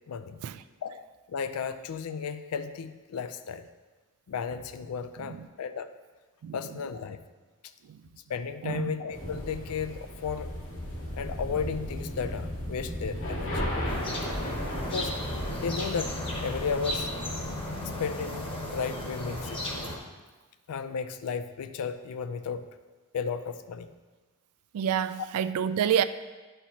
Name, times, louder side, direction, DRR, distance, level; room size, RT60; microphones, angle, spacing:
voice 1, 0.1-0.4 0.8-3.7 4.3-5.9 6.5-7.2 8.3-10.5 11.1-13.6 14.8-15.1 15.6-17.1 18.0-19.6 20.7-22.7 23.1-23.9, left 6 dB, 90° left, 0.4 m, -34 dB
voice 2, 8.6-9.0 24.7-26.0, right 8 dB, 80° right, 0.3 m, -28 dB
sound 1, 9.1-17.4, equal, 60° left, 1.2 m, -35 dB
sound 2, 13.8-20.0, left 1 dB, 25° left, 1.0 m, -35 dB
10.0 x 4.5 x 2.8 m
head